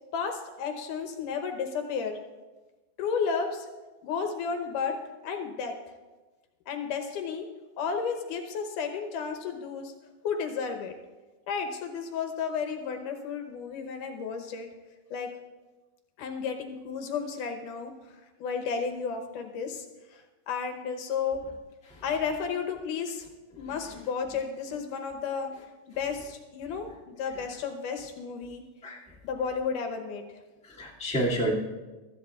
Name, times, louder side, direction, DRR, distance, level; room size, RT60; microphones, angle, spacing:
voice 1, 0.1-2.2 3.0-3.7 4.0-5.8 6.7-7.5 7.8-9.9 10.2-11.0 11.5-14.7 15.1-15.3 16.2-19.9 20.1-21.5 22.0-23.3 23.6-25.5 25.9-28.6 29.2-30.3, left 6 dB, 75° left, 5 dB, 2.4 m, -33 dB
voice 2, 30.7-31.5, right 1 dB, 5° left, -6 dB, 1.5 m, -29 dB
22.5 x 13.5 x 2.4 m, 1.2 s
omnidirectional pair, 3.9 m